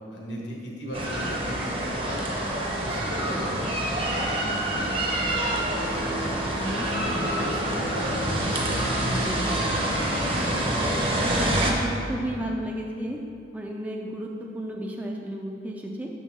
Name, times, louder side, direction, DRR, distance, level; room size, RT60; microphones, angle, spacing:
voice 1, 0.1-2.3 2.6-3.7 4.0-5.5 5.9-10.0, equal, 80° left, -2 dB, 1.2 m, -37 dB
sound 1, 0.9-11.7, right 1 dB, 30° right, 0.7 m, -26 dB
voice 2, 6.5-6.9 9.2-9.5 11.1-13.2 13.5-16.1, right 1 dB, 10° right, -1 dB, 0.3 m, -33 dB
6.6 x 5.5 x 3.6 m, 2.5 s
head